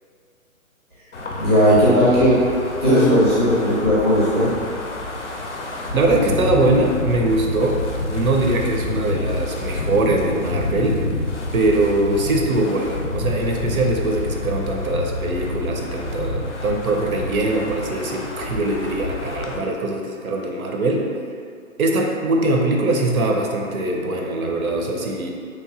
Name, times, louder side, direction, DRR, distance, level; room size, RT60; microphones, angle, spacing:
Wind, 1.1-19.6, left 2 dB, 60° left, 0.5 m, -28 dB
voice 1, 1.4-2.4 2.8-4.5, equal, 20° right, -11 dB, 0.4 m, -16 dB
voice 2, 5.9-7.8 8.1-11.0 11.5-21.1 21.8-25.3, right 2 dB, 80° right, 1 dB, 0.5 m, -22 dB
2.9 x 2.1 x 2.4 m, 2.3 s
figure-of-eight pair, 140°, 42 cm